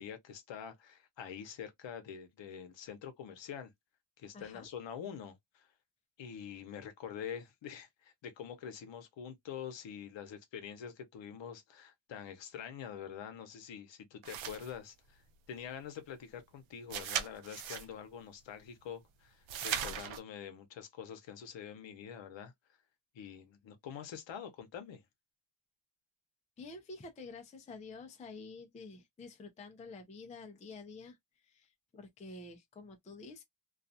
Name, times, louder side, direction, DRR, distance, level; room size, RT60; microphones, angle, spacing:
voice 1, 0.0-3.7 4.2-5.7 6.2-15.2 15.5-22.5 23.1-25.0, left 8 dB, 65° left, 0.8 m, -46 dB
voice 2, 4.3-4.7 26.6-33.4, left 3 dB, 15° left, 0.3 m, -49 dB
sound 1, 14.2-14.7 16.9-17.9 19.5-20.2, right 9 dB, 70° right, 0.6 m, -37 dB
2.4 x 2.3 x 2.6 m
wide cardioid pair, 180°, 48 cm